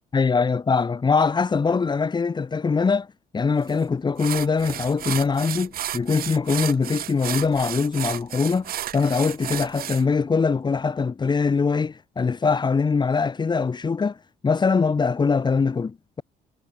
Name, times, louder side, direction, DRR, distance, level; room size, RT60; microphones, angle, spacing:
voice 1, 0.1-3.1 3.3-14.2 14.4-16.2, left 5 dB, 25° left, 2.0 m, -22 dB
sound 1, 3.7-3.8 4.2-10.0, right 12 dB, 60° right, 2.5 m, -32 dB
cardioid pair, 110°, 17 cm